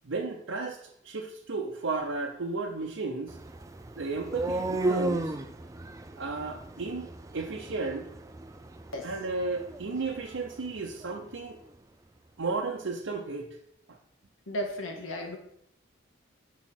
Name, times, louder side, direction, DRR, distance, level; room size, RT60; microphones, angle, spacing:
voice 1, 0.0-0.8 1.0-3.4 4.0-5.3 6.1-8.1 9.0-11.6 12.4-13.5, right 3 dB, 80° right, -1 dB, 0.7 m, -33 dB
sound 1, 3.3-11.2, right 2 dB, 15° right, 0.3 m, -35 dB
voice 2, 14.5-15.4, equal, 85° left, 2 dB, 1.5 m, -34 dB
6.3 x 4.5 x 5.8 m, 0.72 s
head